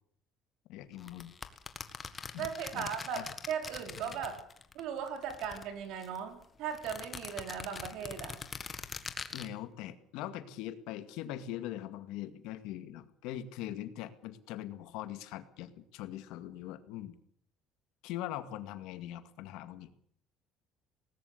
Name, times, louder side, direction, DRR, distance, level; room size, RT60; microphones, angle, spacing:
voice 1, 0.7-1.3 2.3-2.9 3.1-3.3 4.1-4.2 9.3-17.1 18.0-19.9, left 12 dB, 80° left, 11 dB, 2.0 m, -42 dB
sound 1, 1.0-4.8 5.1-6.2 6.7-9.5, left 5 dB, 25° left, 1.6 m, -43 dB
voice 2, 2.4-4.4 4.7-8.4, right 7 dB, 65° right, 7 dB, 4.6 m, -38 dB
19.0 x 19.0 x 8.2 m, 0.63 s
cardioid pair, 150°, 0 cm